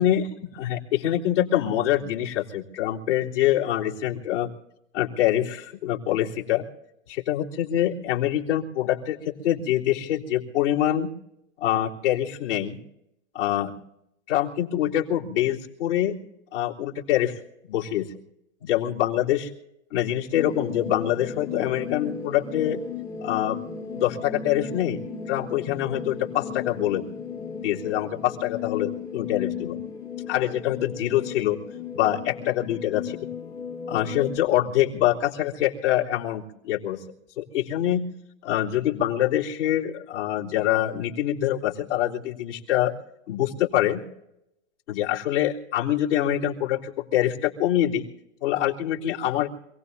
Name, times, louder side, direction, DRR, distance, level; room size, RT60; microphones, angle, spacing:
voice 1, 0.6-4.5 4.9-6.6 7.1-11.1 11.6-12.8 13.3-13.7 14.3-16.2 16.5-17.4 17.7-18.1 18.6-19.5 19.9-22.8 23.2-23.6 23.9-25.0 25.3-27.0 27.6-29.8 30.3-31.6 31.9-33.0 33.9-37.0 37.4-38.0 38.4-42.9 43.3-44.0 44.9-48.1 48.4-49.5, left 12 dB, 75° left, -4 dB, 3.8 m, -25 dB
sound 1, 20.3-34.4, left 6 dB, 10° left, 0.9 m, -35 dB
28.0 x 18.5 x 2.7 m, 0.83 s
hypercardioid pair, 155°, 36 cm